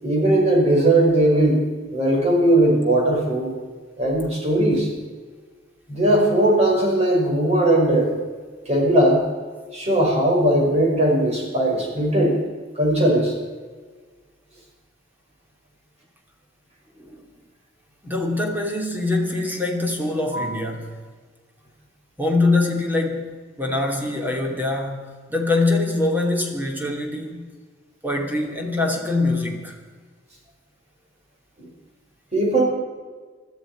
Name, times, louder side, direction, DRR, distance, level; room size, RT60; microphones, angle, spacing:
voice 1, 0.0-1.6 1.9-3.5 4.0-4.9 5.9-8.1 8.7-9.2 9.7-12.4 12.7-13.3 20.3-20.5 31.6-31.7 32.3-32.6, right 1 dB, 35° right, -2 dB, 5.9 m, -18 dB
voice 2, 17.0-17.3 18.0-21.0 22.2-27.4 28.0-29.8, left 2 dB, 10° right, 1 dB, 2.6 m, -24 dB
20.5 x 13.5 x 5.1 m, 1.5 s
head